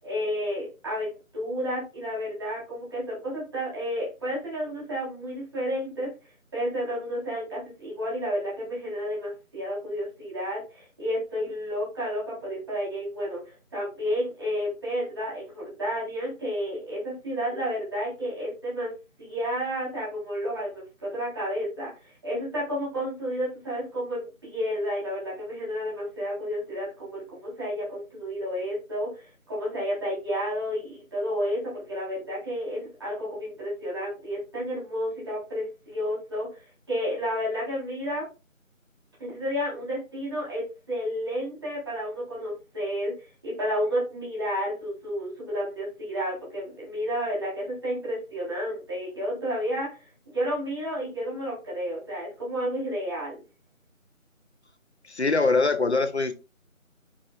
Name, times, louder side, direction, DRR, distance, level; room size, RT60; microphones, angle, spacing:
voice 1, 0.0-6.1 6.5-18.9 19.2-21.9 22.2-29.1 29.5-38.3 39.2-43.1 43.4-49.9 50.3-53.4, equal, 20° right, -8 dB, 3.8 m, -31 dB
voice 2, 55.1-56.3, left 3 dB, 55° left, 10 dB, 0.9 m, -23 dB
11.5 x 5.0 x 2.4 m, 0.30 s
figure-of-eight pair, 170°, 40 cm